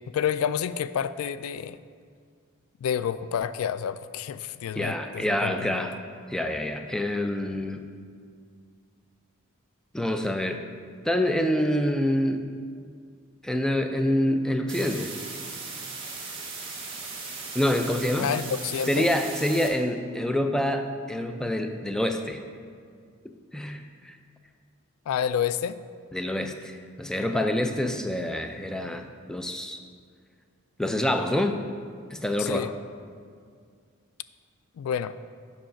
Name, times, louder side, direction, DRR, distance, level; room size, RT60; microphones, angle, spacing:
voice 1, 0.1-1.8 2.8-5.9 18.2-19.1 25.1-25.8 32.4-32.7 34.8-35.2, left 8 dB, 85° left, 15 dB, 0.3 m, -29 dB
voice 2, 4.8-6.0 6.3-7.9 9.9-10.7 11.0-12.4 13.4-15.1 17.5-18.3 18.9-22.4 23.5-24.2 26.1-29.8 30.8-31.6 32.1-32.7, left 1 dB, 5° left, 6 dB, 0.4 m, -26 dB
sound 1, 14.7-19.7, right 4 dB, 25° right, 1.6 m, -37 dB
7.6 x 5.7 x 5.8 m, 2.1 s
head